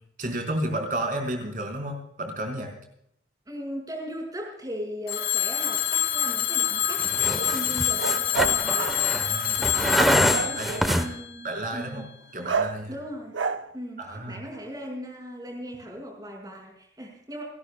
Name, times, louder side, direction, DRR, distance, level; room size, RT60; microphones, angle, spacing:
voice 1, 0.2-2.7 9.1-11.1 11.4-12.0 12.3-13.0 14.0-14.4, right 1 dB, 45° right, 3 dB, 4.6 m, -32 dB
voice 2, 3.5-8.8 10.1-11.5 11.7-12.1 12.9-13.3 13.7-17.4, equal, 20° right, 1 dB, 5.6 m, -38 dB
Telephone, 5.1-11.9, left 11 dB, 65° left, 2.6 m, -26 dB
sound 1, 7.0-11.1, equal, ahead, 1.0 m, -26 dB
sound 2, 7.4-9.0 10.2-10.9 12.4-12.8 13.3-13.7, right 5 dB, 85° right, 0.8 m, -30 dB
29.0 x 13.5 x 2.3 m, 0.72 s
head